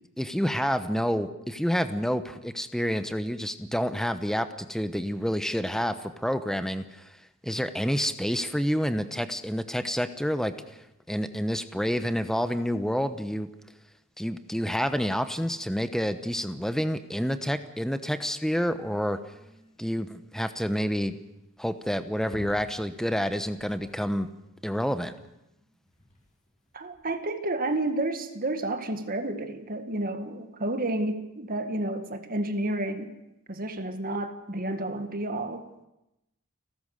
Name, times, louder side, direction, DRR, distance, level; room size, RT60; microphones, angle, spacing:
voice 1, 0.2-7.1 7.4-13.5 14.2-19.2 19.8-21.2 21.6-24.3 24.6-25.1, equal, ahead, 10 dB, 1.0 m, -28 dB
sound 1, 9.2-9.4 11.2-13.0 13.9-14.0 14.7-16.4 17.0-17.5 18.2-24.2 25.0-27.2, left 1 dB, 35° left, 6.3 m, -55 dB
voice 2, 26.7-33.2 33.5-35.9, right 2 dB, 45° right, 7 dB, 1.9 m, -31 dB
30.0 x 13.0 x 6.6 m, 0.90 s
head